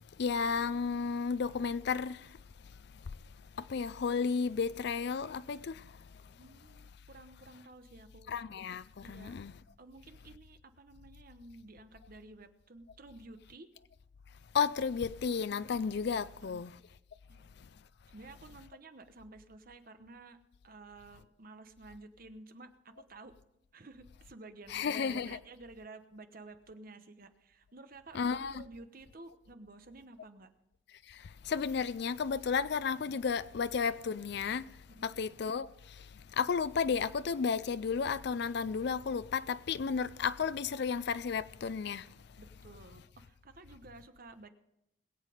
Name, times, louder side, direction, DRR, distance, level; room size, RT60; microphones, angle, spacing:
voice 1, 0.2-2.4 3.5-6.0 8.3-9.5 14.5-16.7 24.7-25.4 28.1-28.6 31.1-42.1, left 5 dB, 60° left, 0.4 m, -33 dB
voice 2, 6.3-8.3 9.0-9.4 9.8-13.7 16.2-16.6 17.3-17.4 18.1-20.4 20.6-23.3 23.7-30.5 34.9-35.2 42.4-44.5, right 2 dB, 50° right, 1.0 m, -53 dB
21.5 x 8.2 x 5.1 m
head